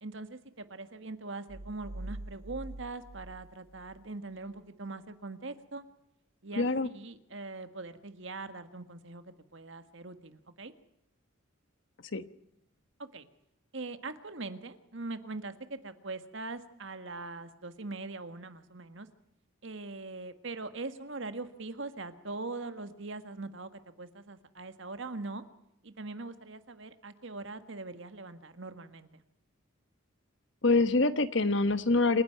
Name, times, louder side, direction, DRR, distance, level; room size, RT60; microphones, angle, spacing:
voice 1, 0.0-5.8 6.4-10.7 13.0-13.3 13.7-19.1 19.6-25.4 25.8-29.2, right 3 dB, 60° right, 10 dB, 1.6 m, -42 dB
sound 1, 1.5-4.1, right 1 dB, 85° right, 1.1 m, -44 dB
voice 2, 6.5-6.9 12.1-12.2 30.6-32.2, left 3 dB, 60° left, 12 dB, 1.1 m, -25 dB
27.5 x 10.5 x 9.2 m, 0.83 s
head